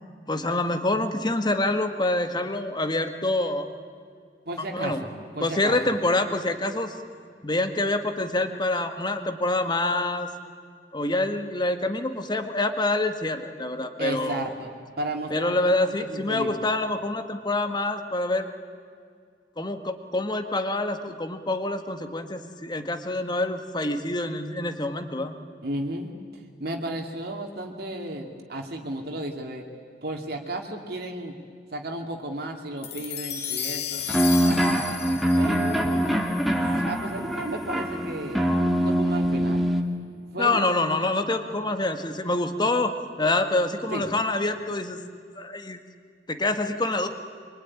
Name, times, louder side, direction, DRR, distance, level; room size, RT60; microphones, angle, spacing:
voice 1, 0.3-3.7 4.7-5.0 5.4-6.9 7.4-10.3 10.9-14.5 15.3-18.5 19.6-25.3 35.9-36.0 40.4-45.0 45.4-45.8 46.3-47.1, left 2 dB, 25° left, 7 dB, 1.8 m, -26 dB
voice 2, 4.5-5.9 14.0-14.7 15.0-16.5 25.6-26.1 26.6-29.6 30.0-31.3 31.7-34.0 34.4-34.7 35.3-36.1 36.6-38.4 38.8-39.7 40.3-40.6 43.9-44.1, right 1 dB, 60° right, 2 dB, 2.7 m, -34 dB
sound 1, 32.8-37.4, left 9 dB, 65° left, 2.8 m, -35 dB
sound 2, 34.1-39.8, equal, ahead, 2.1 m, -24 dB
26.0 x 23.5 x 9.9 m, 2.1 s
head